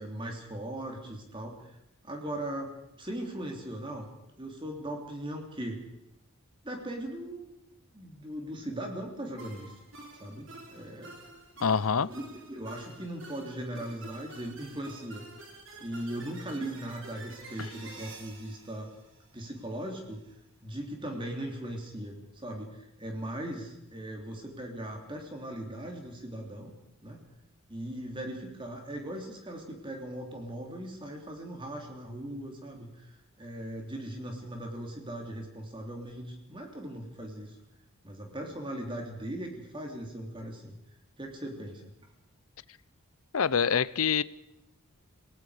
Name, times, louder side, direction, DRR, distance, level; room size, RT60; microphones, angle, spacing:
voice 1, 0.0-1.8 2.0-4.1 4.4-5.8 6.6-7.5 7.9-9.8 10.2-11.1 11.9-15.2 15.8-18.9 19.3-20.2 20.6-26.7 27.0-27.2 27.7-33.1 33.4-37.6 38.0-40.8 41.2-41.8, right 1 dB, 20° right, 3.1 m, -39 dB
sound 1, 9.4-19.8, right 2 dB, 60° right, 3.8 m, -49 dB
voice 2, 11.6-12.1 17.6-17.7 43.3-44.2, left 6 dB, 80° left, 0.7 m, -25 dB
28.5 x 18.5 x 5.0 m
head